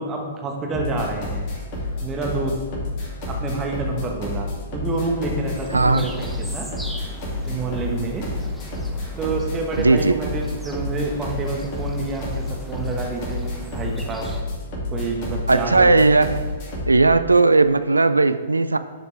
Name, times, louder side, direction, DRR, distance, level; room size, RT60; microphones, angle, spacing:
voice 1, 0.0-1.4 2.0-2.6 3.3-6.7 7.5-8.3 9.2-14.3 14.9-15.9, right 3 dB, 20° right, 1 dB, 1.3 m, -28 dB
sound 1, 0.7-17.0, left 2 dB, 40° left, 2.4 m, -29 dB
sound 2, 5.4-14.4, equal, ahead, 0.7 m, -40 dB
voice 2, 5.7-6.0 9.8-10.2 15.5-16.4 16.9-18.8, right 3 dB, 85° right, 12 dB, 0.3 m, -17 dB
11.5 x 4.9 x 3.3 m, 1.4 s
figure-of-eight pair, 115°, 0 cm